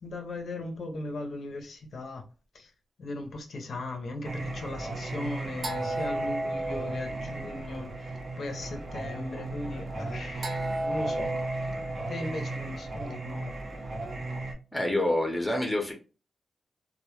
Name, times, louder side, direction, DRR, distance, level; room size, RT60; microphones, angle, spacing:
voice 1, 0.0-2.2 2.5-2.7 3.0-11.4 12.1-13.6, left 2 dB, 55° left, 0.5 m, -38 dB
Singing, 4.2-14.5, right 2 dB, 40° right, 0.6 m, -34 dB
voice 2, 14.7-15.9, left 1 dB, 10° left, 0.6 m, -27 dB
2.1 x 2.0 x 2.9 m
wide cardioid pair, 160°, 0 cm